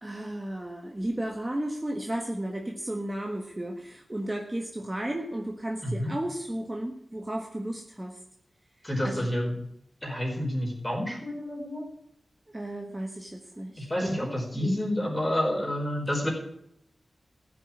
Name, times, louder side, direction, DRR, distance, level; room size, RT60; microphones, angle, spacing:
voice 1, 0.0-8.2 9.0-9.3 12.5-14.8, right 1 dB, 15° right, 1 dB, 1.5 m, -34 dB
voice 2, 8.8-9.5 10.0-11.8 13.8-16.3, left 1 dB, 15° left, 0 dB, 4.8 m, -29 dB
15.0 x 6.2 x 9.6 m, 0.72 s
wide cardioid pair, 110°, 0 cm